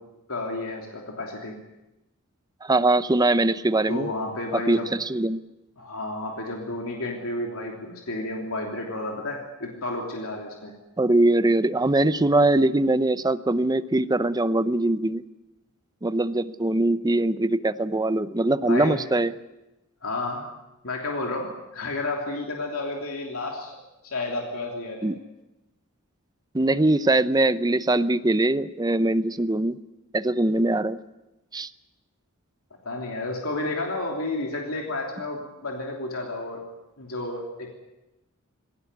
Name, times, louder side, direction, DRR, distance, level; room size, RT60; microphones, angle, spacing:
voice 1, 0.3-1.6 3.9-4.9 5.8-10.7 18.7-19.0 20.0-20.4 20.8-23.7 24.0-25.1 32.8-36.6 37.0-37.7, left 2 dB, 75° left, 0 dB, 3.2 m, -31 dB
voice 2, 2.6-4.1 4.7-5.4 11.0-15.2 16.0-19.3 25.0-25.2 26.5-29.8 30.1-31.0 31.5-31.7, right 2 dB, 20° right, 14 dB, 0.7 m, -22 dB
20.5 x 18.0 x 9.7 m, 0.98 s
head